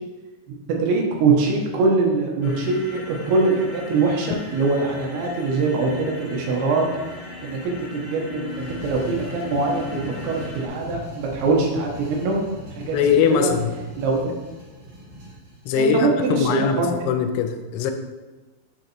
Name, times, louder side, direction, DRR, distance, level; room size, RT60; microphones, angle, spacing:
voice 1, 0.7-6.8 7.4-12.4 12.8-13.5 14.0-14.2 15.8-16.9, right 3 dB, 80° right, 0 dB, 3.3 m, -23 dB
sound 1, 2.4-10.7, left 3 dB, 65° left, 1.9 m, -38 dB
sound 2, 8.5-15.9, right 1 dB, 40° right, 1.7 m, -39 dB
voice 2, 12.9-13.7 15.7-17.9, left 7 dB, 85° left, 6 dB, 3.0 m, -21 dB
7.1 x 6.6 x 3.0 m, 1.2 s
omnidirectional pair, 5.4 m